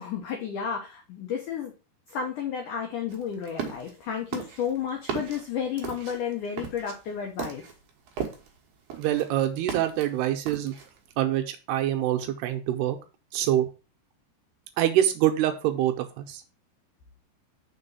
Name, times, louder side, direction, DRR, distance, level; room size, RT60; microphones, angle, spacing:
voice 1, 0.0-1.7 2.1-7.6, left 7 dB, 80° left, 2 dB, 1.8 m, -32 dB
sound 1, 3.1-3.9 4.3-8.6 8.9-10.1 10.4-11.0, right 7 dB, 65° right, 2.2 m, -36 dB
voice 2, 9.0-10.7 11.2-13.0 13.3-13.7 14.8-16.4, right 12 dB, 80° right, 6 dB, 2.6 m, -25 dB
6.2 x 4.0 x 5.3 m, 0.32 s
omnidirectional pair, 4.9 m